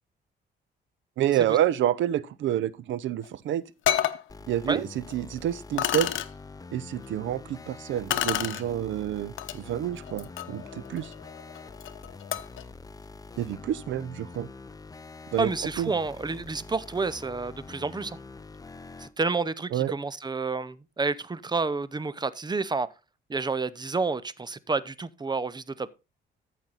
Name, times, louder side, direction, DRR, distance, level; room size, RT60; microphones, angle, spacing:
voice 1, 1.2-3.6 4.5-6.1 6.7-11.1 13.4-14.5 15.3-15.5 15.8-15.9 19.7-19.9, right 11 dB, 75° right, 0.7 m, -28 dB
sound 1, 3.2-3.3 3.8-4.2 5.1-5.2 5.8-6.3 8.1-8.6 9.4-9.6 10.0-12.6, left 12 dB, 80° left, 0.9 m, -30 dB
sound 2, 4.3-19.1, left 3 dB, 20° left, 0.7 m, -45 dB
voice 2, 15.4-18.2 19.0-22.9 23.3-25.9, right 4 dB, 20° right, 0.7 m, -29 dB
13.5 x 5.9 x 4.0 m
cardioid pair, 90°, 20 cm